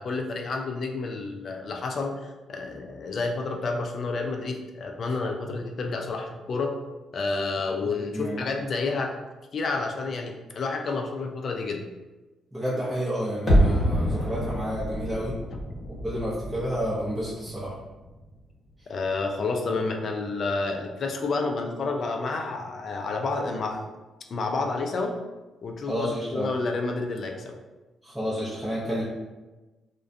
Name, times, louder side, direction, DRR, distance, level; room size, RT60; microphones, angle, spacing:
voice 1, 0.0-6.7 7.1-9.2 9.5-11.8 18.9-23.8 24.3-25.2 25.6-27.6, left 3 dB, 45° left, 3 dB, 0.3 m, -30 dB
voice 2, 7.8-8.4 12.5-15.4 16.0-17.7 25.8-26.5 28.0-29.0, equal, 5° right, -9 dB, 0.6 m, -30 dB
sound 1, 13.5-18.4 18.7-18.8, equal, 25° left, 0.8 m, -26 dB
2.4 x 2.1 x 2.5 m, 1.2 s
cardioid pair, 130°, 0 cm